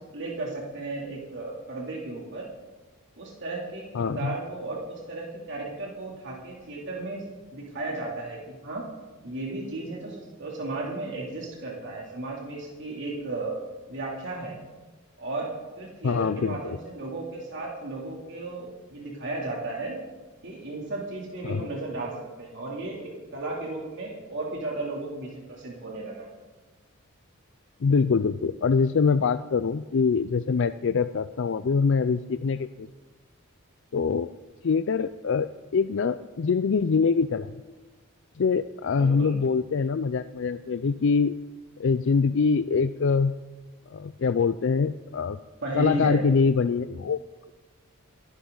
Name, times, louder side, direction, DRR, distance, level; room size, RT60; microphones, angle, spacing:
voice 1, 0.0-2.5 3.2-7.2 7.5-8.8 9.2-13.6 13.9-14.6 15.2-20.0 20.4-26.3 38.9-39.4 45.6-46.2, right 2 dB, 60° right, -3 dB, 2.9 m, -34 dB
voice 2, 3.9-4.3 16.0-16.8 21.4-21.7 27.8-32.9 33.9-34.3 34.6-37.5 38.4-41.4 41.8-43.3 43.9-45.4 45.7-47.2, left 5 dB, 60° left, 12 dB, 0.4 m, -24 dB
29.5 x 11.5 x 3.9 m, 1.3 s
head